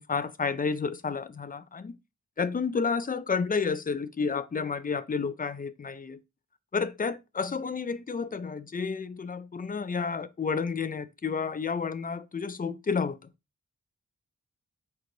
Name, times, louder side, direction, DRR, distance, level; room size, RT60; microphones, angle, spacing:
voice 1, 0.0-2.0 2.4-6.2 6.7-13.2, left 5 dB, 25° left, 0.4 m, -31 dB
4.7 x 3.7 x 2.6 m
wide cardioid pair, 100°, 32 cm